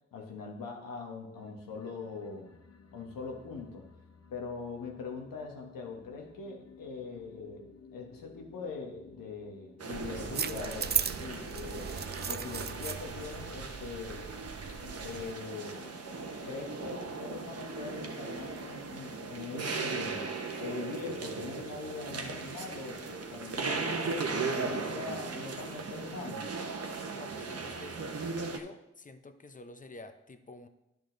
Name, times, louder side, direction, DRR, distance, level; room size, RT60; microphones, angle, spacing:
voice 1, 0.1-2.5 2.9-3.9 4.3-12.0 12.2-14.3 15.0-15.9 16.4-20.3 20.6-26.5, left 4 dB, 85° left, 1 dB, 1.3 m, -42 dB
sound 1, 1.3-19.9, left 5 dB, 50° left, 1.0 m, -56 dB
sound 2, 9.8-28.6, right 4 dB, 50° right, 1.0 m, -38 dB
sound 3, 9.9-15.3, right 7 dB, 30° right, 0.4 m, -37 dB
voice 2, 27.1-30.7, left 2 dB, 25° left, 9 dB, 0.9 m, -49 dB
10.5 x 5.2 x 3.9 m, 0.89 s
supercardioid pair, 40°, 33 cm